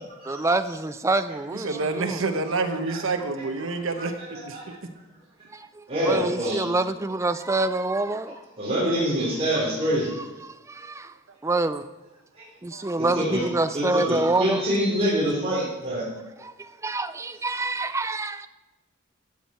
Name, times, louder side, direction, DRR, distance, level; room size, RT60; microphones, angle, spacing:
voice 1, 0.3-2.2 5.5-8.4 10.2-11.1 11.4-11.9 12.6-14.6 16.4-18.5, right 2 dB, 15° right, 0.4 m, -27 dB
voice 2, 1.5-4.8 11.5-11.6 12.7-12.9, right 3 dB, 70° right, 1.0 m, -28 dB
voice 3, 4.3-4.6 5.9-6.6 8.6-10.1 13.0-13.4 13.7-16.0, equal, 30° right, 3.5 m, -25 dB
13.5 x 7.4 x 4.4 m
head